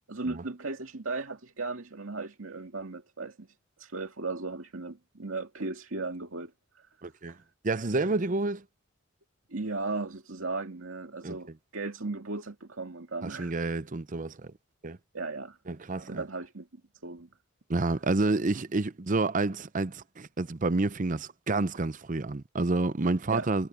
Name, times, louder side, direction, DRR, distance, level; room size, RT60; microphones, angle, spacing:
voice 1, 0.1-3.5 3.8-6.9 9.5-13.5 15.1-15.6 16.1-16.7 17.0-17.3 23.3-23.5, right 3 dB, 85° right, 2.2 m, -36 dB
voice 2, 7.0-7.4 7.6-8.6 11.2-11.4 13.2-14.5 14.8-15.0 15.7-16.2 17.7-23.7, right 3 dB, 40° right, 0.7 m, -29 dB
head